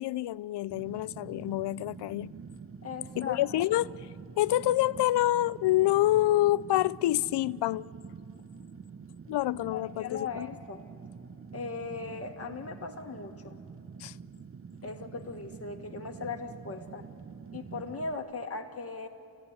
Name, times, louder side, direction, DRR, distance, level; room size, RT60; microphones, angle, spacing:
voice 1, 0.0-2.3 3.2-3.9 4.4-7.9 9.3-10.5 14.0-14.1, left 15 dB, 85° left, 0.5 m, -27 dB
Fire, 0.7-18.1, right 5 dB, 35° right, 0.8 m, -46 dB
voice 2, 2.8-3.4 9.7-10.8 11.5-13.6 14.8-17.0 17.5-19.1, left 4 dB, 35° left, 2.1 m, -38 dB
28.5 x 16.0 x 10.0 m
cardioid pair, 85°, 40 cm